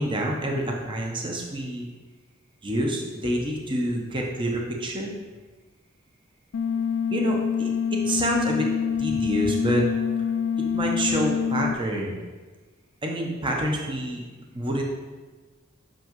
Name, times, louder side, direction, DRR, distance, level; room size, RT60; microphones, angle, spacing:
voice 1, 0.0-1.8 2.6-5.1 7.1-8.7 9.0-9.8 10.7-12.2 13.0-14.2 14.5-14.8, right 1 dB, 25° right, 0 dB, 0.8 m, -27 dB
sound 1, 6.5-11.7, left 7 dB, 65° left, 0.3 m, -26 dB
7.7 x 5.9 x 3.1 m, 1.3 s
head